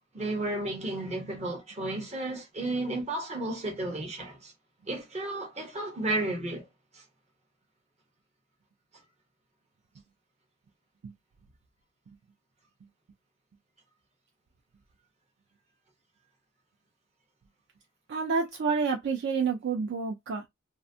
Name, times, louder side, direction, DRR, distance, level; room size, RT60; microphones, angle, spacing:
voice 1, 0.1-4.5 4.9-6.6, right 2 dB, 30° right, 0.9 m, -33 dB
voice 2, 18.1-20.5, right 5 dB, 55° right, 0.4 m, -29 dB
2.5 x 2.2 x 2.6 m
head